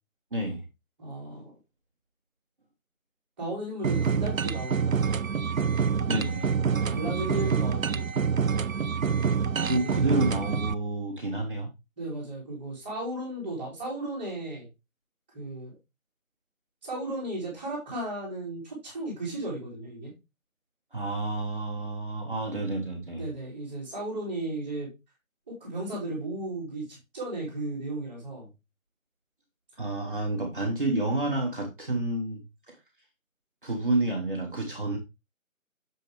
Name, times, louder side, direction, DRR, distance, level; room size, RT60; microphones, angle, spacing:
voice 1, 0.3-0.6 6.1-6.5 9.6-11.7 20.9-23.3 29.8-32.8 33.6-35.0, right 2 dB, 40° right, 1 dB, 1.4 m, -29 dB
voice 2, 1.0-1.5 3.4-5.0 6.7-8.1 9.7-10.1 12.0-14.7 15.3-15.7 16.8-20.1 23.1-24.9 25.5-28.5, right 1 dB, 10° right, -7 dB, 2.4 m, -35 dB
sound 1, 3.8-10.7, right 6 dB, 70° right, 0.6 m, -26 dB
6.9 x 6.3 x 3.3 m, 0.23 s
figure-of-eight pair, 170°, 42 cm